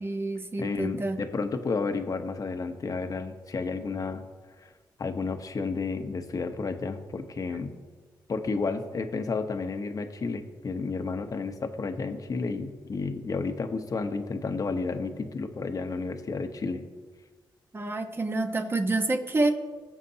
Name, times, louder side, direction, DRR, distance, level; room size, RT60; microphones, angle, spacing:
voice 1, 0.0-1.2 17.7-19.6, right 2 dB, 30° right, 5 dB, 1.2 m, -28 dB
voice 2, 0.6-4.2 4.6-4.7 5.0-7.8 8.3-16.8, left 4 dB, 45° left, 7 dB, 1.0 m, -31 dB
20.5 x 7.3 x 2.9 m, 1.4 s
cardioid pair, 75°, 8 cm